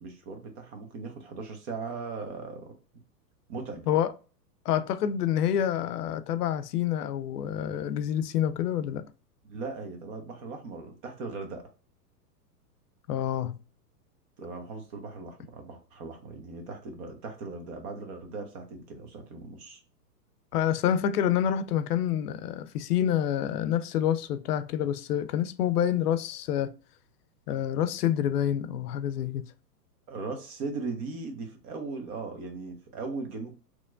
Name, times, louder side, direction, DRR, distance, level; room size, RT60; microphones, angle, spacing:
voice 1, 0.0-2.7 3.5-3.9 9.4-11.6 14.4-19.8 30.1-33.5, right 4 dB, 40° right, 1.1 m, -38 dB
voice 2, 4.7-9.0 13.1-13.6 20.5-26.7 27.5-29.5, left 10 dB, 65° left, 0.6 m, -27 dB
4.3 x 3.1 x 2.4 m
hypercardioid pair, 130°, 50 cm